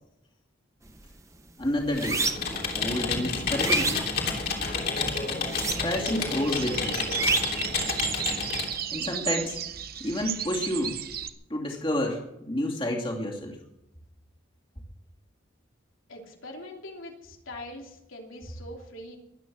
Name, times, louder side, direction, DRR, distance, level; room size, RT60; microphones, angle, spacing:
sound 1, 0.8-1.1 1.5-2.6 3.1-4.8 5.4-6.2 6.4-7.7, right 3 dB, 15° right, 0.9 m, -29 dB
voice 1, 1.6-2.2 2.7-4.5 5.8-7.0 8.9-9.6 10.0-11.0 11.5-13.6, left 1 dB, 25° left, -1 dB, 2.7 m, -30 dB
Computer keyboard, 1.9-8.8, left 4 dB, 45° left, 3.1 m, -30 dB
sound 2, 5.5-11.3, right 9 dB, 45° right, 0.9 m, -34 dB
voice 2, 16.1-19.2, left 1 dB, 80° left, 1 dB, 3.0 m, -42 dB
22.5 x 9.3 x 6.2 m, 0.83 s
head